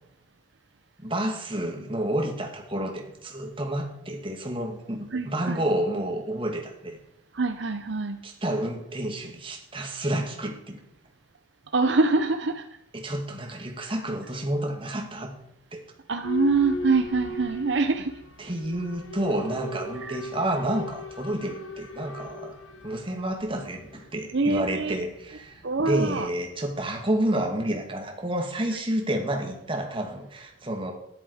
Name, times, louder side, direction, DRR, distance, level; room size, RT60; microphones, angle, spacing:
voice 1, 1.0-7.0 8.2-10.8 12.9-15.3 15.7-15.8 18.4-22.5 22.8-30.9, right 1 dB, 25° right, 2 dB, 2.3 m, -30 dB
voice 2, 5.1-5.6 7.3-8.2 11.7-12.7 16.1-18.1 20.0-20.2 24.3-25.0 25.6-26.3, right 3 dB, 60° right, 7 dB, 0.8 m, -24 dB
Boat Water vehicle / Alarm, 16.2-26.9, left 2 dB, 85° left, 1.7 m, -39 dB
13.0 x 11.0 x 4.9 m, 0.81 s
head